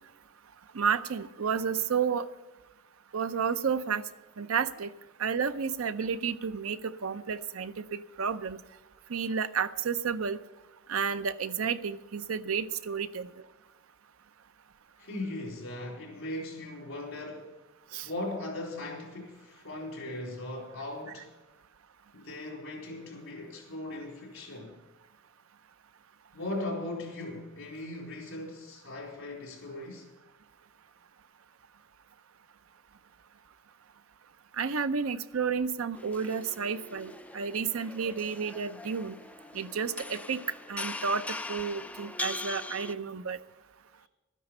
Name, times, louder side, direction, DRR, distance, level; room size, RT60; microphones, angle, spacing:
voice 1, 0.7-2.3 3.1-4.1 4.4-4.9 5.2-8.6 9.1-10.4 10.9-13.3 17.9-18.1 34.5-39.2 39.5-40.4 40.7-43.4, right 6 dB, 90° right, 0.6 m, -31 dB
voice 2, 15.0-17.5 18.0-21.3 22.1-24.8 26.3-30.1, left 2 dB, 70° left, 3.9 m, -38 dB
sound 1, 36.0-42.9, left 2 dB, 5° left, 0.4 m, -41 dB
13.0 x 10.0 x 6.7 m
head